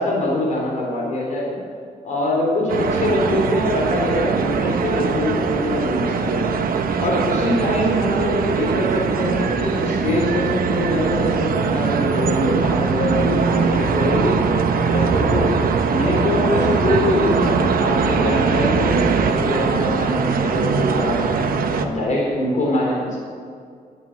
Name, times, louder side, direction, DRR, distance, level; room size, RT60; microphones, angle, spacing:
voice 1, 0.0-1.6 2.0-6.6 7.0-14.4 14.9-15.6 15.9-21.5 21.8-23.2, left 1 dB, 55° left, -2 dB, 3.8 m, -23 dB
sound 1, 2.7-21.9, right 5 dB, 80° right, 1.1 m, -21 dB
12.0 x 9.4 x 8.8 m, 2.2 s
wide cardioid pair, 165°, 15 cm